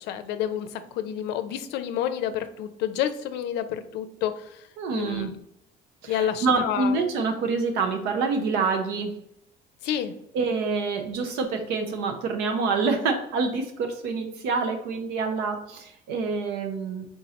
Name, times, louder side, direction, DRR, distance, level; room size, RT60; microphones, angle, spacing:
voice 1, 0.0-4.6 4.9-5.4 6.1-7.0 9.8-10.1, left 10 dB, 85° left, 10 dB, 0.5 m, -29 dB
voice 2, 4.8-5.3 6.0-9.1 10.3-17.1, right 4 dB, 90° right, 5 dB, 0.8 m, -27 dB
4.1 x 3.8 x 2.9 m, 0.76 s
cardioid pair, 110°, 17 cm